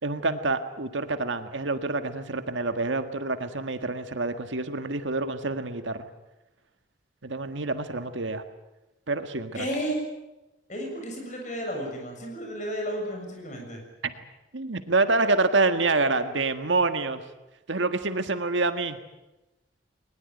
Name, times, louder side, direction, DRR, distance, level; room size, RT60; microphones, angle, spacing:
voice 1, 0.0-6.1 7.2-8.4 9.1-9.6 14.0-14.1 14.5-17.2 17.7-19.0, right 3 dB, 75° right, 9 dB, 1.6 m, -27 dB
voice 2, 9.5-10.0 10.7-13.8, equal, 40° left, 2 dB, 7.2 m, -32 dB
21.0 x 21.0 x 9.3 m, 1.0 s
head